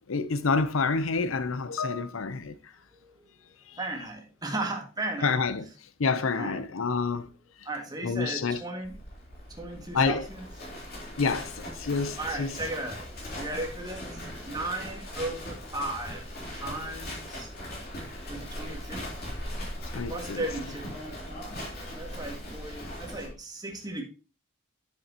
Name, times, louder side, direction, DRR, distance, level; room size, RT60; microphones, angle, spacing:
voice 1, 0.0-2.6 3.7-3.8 5.2-5.7 6.0-7.3 8.0-8.6 9.9-10.3 11.2-12.5 19.9-20.5, left 4 dB, 75° left, 0.7 m, -28 dB
voice 2, 3.0-3.3 3.8-5.4 6.4-6.6 7.7-9.0 9.5-10.4 12.2-13.1 13.3-16.3 16.5-17.5 18.3-19.1 20.1-20.9 21.9-24.0, right 2 dB, 20° right, 1.9 m, -36 dB
Livestock farm animals working animals, 8.8-23.3, left 1 dB, 50° left, 3.5 m, -39 dB
9.9 x 7.0 x 2.9 m
head